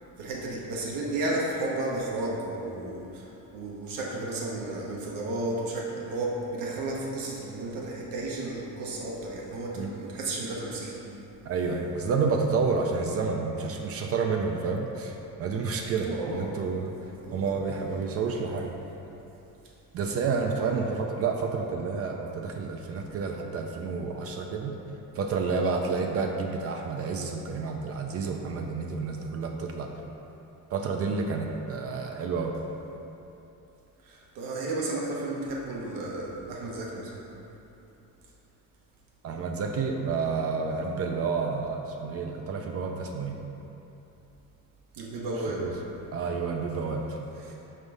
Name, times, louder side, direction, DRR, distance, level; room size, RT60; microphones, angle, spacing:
voice 1, 0.2-11.0 16.0-16.6 17.2-17.5 20.6-20.9 34.0-37.2 44.9-45.7 47.4-47.5, right 2 dB, 85° right, -3 dB, 1.0 m, -33 dB
voice 2, 11.4-16.9 17.3-18.8 19.9-24.7 25.1-29.9 30.7-32.5 39.2-43.4 45.6-45.7 46.1-47.2, right 4 dB, 45° right, 2 dB, 0.4 m, -29 dB
5.4 x 3.5 x 5.3 m, 2.9 s
cardioid pair, 160°, 33 cm